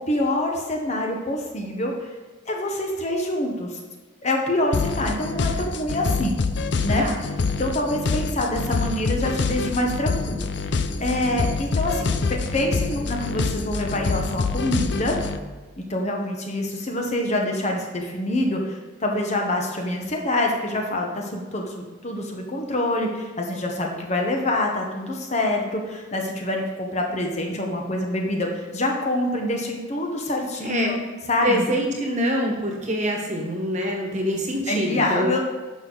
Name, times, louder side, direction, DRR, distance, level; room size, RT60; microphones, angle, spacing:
voice 1, 0.0-2.1 2.5-3.8 4.2-6.4 6.8-7.1 7.6-15.2 15.9-31.0 31.3-31.7 34.7-35.4, left 1 dB, 35° left, 1 dB, 1.1 m, -26 dB
sound 1, 4.7-15.4, left 4 dB, 60° left, 0.5 m, -26 dB
voice 2, 30.6-31.0 31.4-35.3, equal, 35° right, 1 dB, 1.4 m, -25 dB
10.5 x 6.3 x 4.0 m, 1.3 s
head